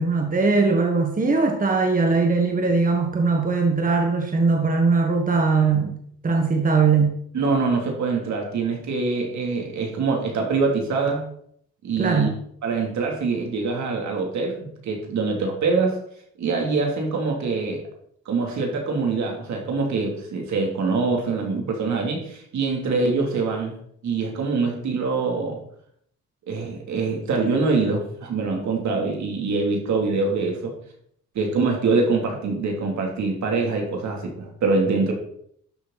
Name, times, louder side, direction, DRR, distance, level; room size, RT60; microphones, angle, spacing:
voice 1, 0.0-6.0 6.2-7.2 12.0-12.4, right 4 dB, 25° right, 3 dB, 1.6 m, -20 dB
voice 2, 7.3-11.3 11.8-12.3 12.6-16.0 16.4-17.8 18.2-23.8 24.0-25.6 26.5-30.7 31.3-35.1, right 4 dB, 65° right, 1 dB, 3.1 m, -24 dB
12.0 x 6.8 x 4.2 m, 0.66 s
cardioid pair, 90°, 30 cm